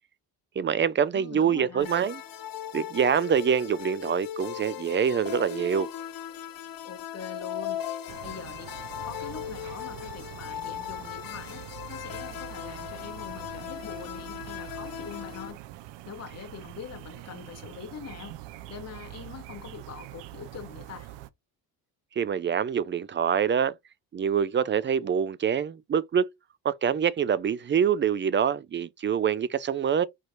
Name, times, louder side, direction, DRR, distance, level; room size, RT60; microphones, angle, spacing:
voice 1, 0.6-2.2 2.7-5.9 22.2-23.7 24.1-26.3 26.6-30.0, right 7 dB, 30° right, 0.4 m, -25 dB
voice 2, 1.1-1.9 6.8-8.7 9.0-15.6 16.0-18.4 18.7-21.1, left 7 dB, 35° left, 1.1 m, -43 dB
sound 1, 1.8-15.5, left 10 dB, 55° left, 0.8 m, -38 dB
sound 2, 8.1-21.3, right 14 dB, 85° right, 0.6 m, -44 dB
4.5 x 3.1 x 2.5 m
cardioid pair, 85°, 42 cm